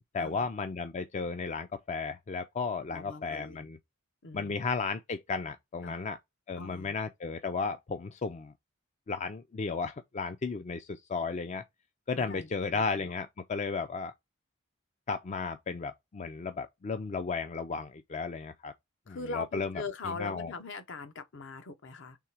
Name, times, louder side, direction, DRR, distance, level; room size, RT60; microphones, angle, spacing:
voice 1, 0.1-3.8 4.3-6.2 6.5-8.5 9.1-11.6 12.1-14.1 15.1-18.7 19.1-19.7 20.0-20.5, left 4 dB, 35° left, 0.4 m, -34 dB
voice 2, 2.9-3.7 4.2-4.6 5.8-6.0 6.6-6.9 12.2-13.1 19.1-22.2, left 3 dB, 60° left, 0.7 m, -41 dB
3.6 x 3.2 x 4.3 m
head